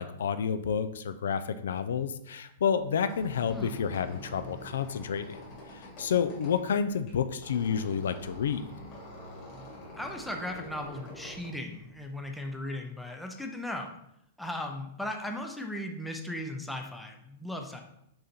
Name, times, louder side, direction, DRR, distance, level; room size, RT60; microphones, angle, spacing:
voice 1, 0.0-5.4 5.7-8.6, left 7 dB, 80° left, 11 dB, 0.5 m, -30 dB
Squeak, 2.8-12.4, equal, 25° left, 2.0 m, -47 dB
voice 2, 3.5-3.8 10.0-14.0 14.4-17.8, left 1 dB, ahead, 3 dB, 0.4 m, -37 dB
6.5 x 4.0 x 4.3 m, 0.78 s
supercardioid pair, 180°, 0 cm